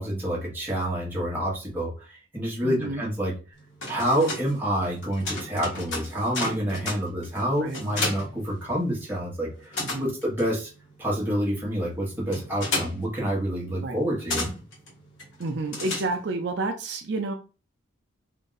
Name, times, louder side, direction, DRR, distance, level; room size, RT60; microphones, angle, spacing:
voice 1, 0.0-3.3 3.8-10.7 11.0-14.5, equal, 10° right, -4 dB, 1.2 m, -28 dB
voice 2, 2.6-3.0 7.6-7.8 9.8-10.1 13.8-14.0 15.4-17.3, right 2 dB, 55° right, 4 dB, 0.5 m, -30 dB
sound 1, 3.6-9.2 9.4-16.5, left 2 dB, 65° left, 1.7 m, -34 dB
3.7 x 2.6 x 3.9 m, 0.34 s
head